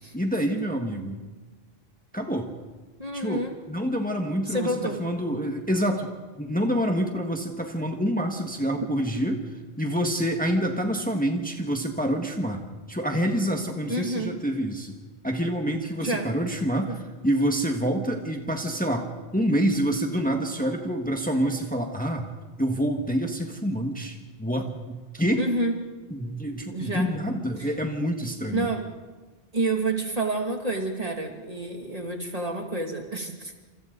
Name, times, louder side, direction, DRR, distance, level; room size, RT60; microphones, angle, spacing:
voice 1, 0.1-1.2 2.1-2.5 3.1-6.1 6.4-9.4 9.8-12.6 12.9-15.0 15.2-17.0 17.2-22.2 22.6-25.5 26.1-28.7, equal, 10° left, 3 dB, 1.7 m, -27 dB
voice 2, 3.0-3.5 4.5-5.0 8.8-8.9 13.9-14.3 16.0-16.3 16.9-17.0 25.4-25.7 26.7-27.1 27.6-27.7 28.5-28.8 29.5-33.6, right 2 dB, 40° right, 2 dB, 2.6 m, -29 dB
28.5 x 27.5 x 4.0 m, 1.3 s
omnidirectional pair, 1.0 m